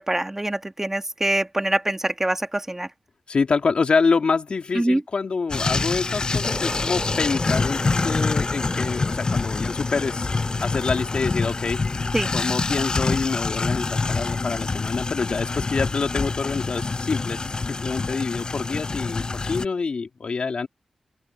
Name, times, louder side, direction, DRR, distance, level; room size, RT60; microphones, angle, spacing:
voice 1, 0.0-2.9 4.7-5.0 12.1-12.3, right 1 dB, 20° right, 2.0 m, -24 dB
voice 2, 3.3-10.3 10.6-20.7, left 4 dB, 65° left, 3.1 m, -26 dB
sound 1, 5.5-19.6, left 3 dB, 45° left, 0.4 m, -26 dB
sound 2, 6.4-11.7, equal, ahead, 3.3 m, -37 dB
open air
cardioid pair, 45°, 2 cm